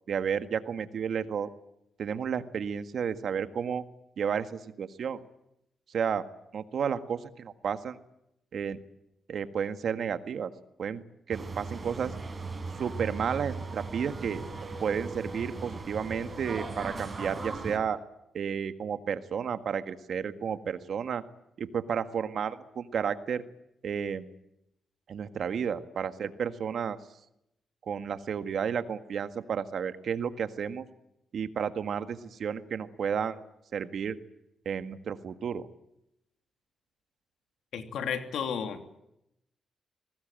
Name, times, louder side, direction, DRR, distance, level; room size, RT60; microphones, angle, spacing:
voice 1, 0.1-1.5 2.0-3.8 4.2-5.2 5.9-6.2 6.5-8.0 8.5-8.8 9.3-10.5 10.8-11.0 11.3-12.1 12.8-14.4 14.8-18.0 18.3-21.2 21.6-23.4 23.8-24.3 25.1-27.0 27.9-30.8 31.3-33.4 33.7-34.2 34.7-35.6, right 7 dB, 65° right, 10 dB, 1.7 m, -32 dB
sound 1, 11.3-17.8, right 3 dB, 30° right, 5.9 m, -38 dB
voice 2, 37.7-38.8, left 7 dB, 80° left, 7 dB, 2.9 m, -32 dB
24.0 x 19.5 x 9.0 m, 0.81 s
cardioid pair, 80°, 0 cm